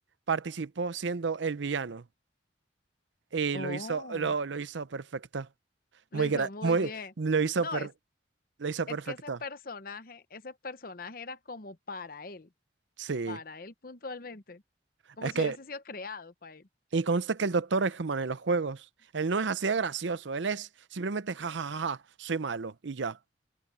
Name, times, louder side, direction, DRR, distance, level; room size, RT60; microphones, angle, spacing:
voice 1, 0.3-2.0 3.3-5.5 6.1-6.9 7.2-7.9 8.6-9.0 9.3-9.4 13.0-13.4 15.2-15.6 16.9-18.9 19.1-23.2, right 4 dB, 75° right, 0.7 m, -30 dB
voice 2, 3.5-4.3 6.1-7.1 7.6-7.9 8.9-12.5 13.3-14.6 15.2-16.7, left 3 dB, 50° left, 0.9 m, -41 dB
head